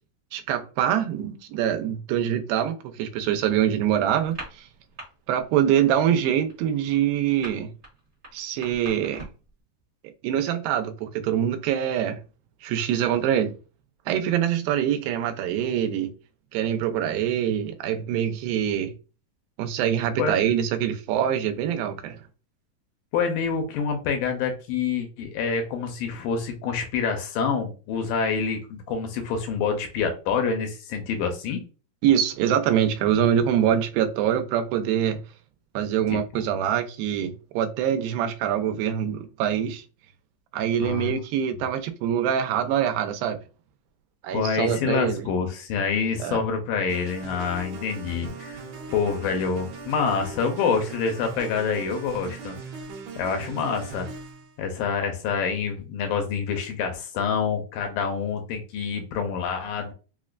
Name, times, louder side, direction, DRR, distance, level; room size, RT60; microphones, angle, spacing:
voice 1, 0.3-4.7 5.3-7.7 8.3-9.3 10.2-12.2 12.6-13.5 14.1-16.1 16.5-18.9 19.6-22.2 32.0-35.2 35.8-39.8 40.5-43.4 44.2-45.3 46.2-46.4, right 10 dB, 85° right, 2.4 m, -24 dB
sound 1, 4.2-5.1 5.4-5.7 6.0-9.5, right 1 dB, 35° right, 0.8 m, -41 dB
voice 2, 23.1-31.6 36.1-36.4 40.8-41.2 44.3-48.6 48.9-52.6 53.2-54.1 54.6-59.9, left 6 dB, 80° left, 2.3 m, -27 dB
sound 2, 46.9-54.5, right 4 dB, 70° right, 2.1 m, -39 dB
5.6 x 2.1 x 2.4 m
omnidirectional pair, 4.1 m